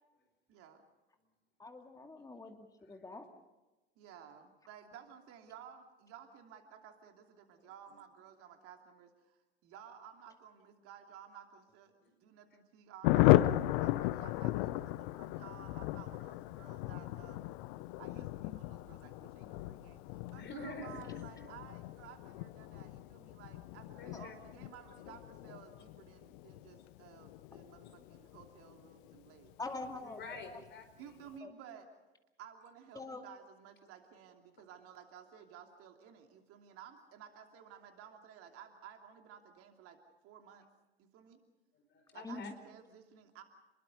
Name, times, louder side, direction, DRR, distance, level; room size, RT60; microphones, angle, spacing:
voice 1, 0.5-0.8 4.0-11.9 12.2-17.5 18.0-29.7 31.0-31.9 32.4-40.0 40.2-40.7 41.0-41.4 42.1-43.4, right 8 dB, 45° right, 4 dB, 2.9 m, -55 dB
voice 2, 1.6-3.3 24.1-24.2 29.6-30.2 31.4-31.5 32.9-33.2 42.2-42.5, left 3 dB, 10° left, 5 dB, 2.4 m, -44 dB
voice 3, 2.8-3.2 12.0-12.1 13.2-13.4 18.9-19.0 19.6-19.8 20.4-21.4 24.0-24.3 27.8-28.0 30.0-31.1 41.7-42.5, left 2 dB, 35° left, 7 dB, 4.9 m, -49 dB
Thunder, 13.0-29.2 29.4-29.5 29.8-30.0 30.2-30.6, left 17 dB, 55° left, 0.9 m, -35 dB
29.5 x 21.5 x 5.3 m, 1.1 s
figure-of-eight pair, 75°, 31 cm